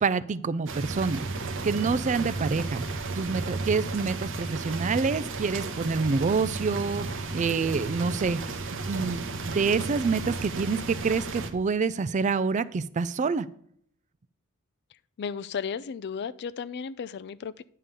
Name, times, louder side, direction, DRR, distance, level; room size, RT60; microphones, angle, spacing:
voice 1, 0.0-1.3 1.6-8.6 8.9-13.5, right 4 dB, 35° right, 16 dB, 0.4 m, -27 dB
sound 1, 0.7-11.5, right 3 dB, 60° right, 0.9 m, -33 dB
voice 2, 15.2-17.6, left 6 dB, 50° left, 17 dB, 0.4 m, -34 dB
9.6 x 3.7 x 6.8 m, 0.65 s
head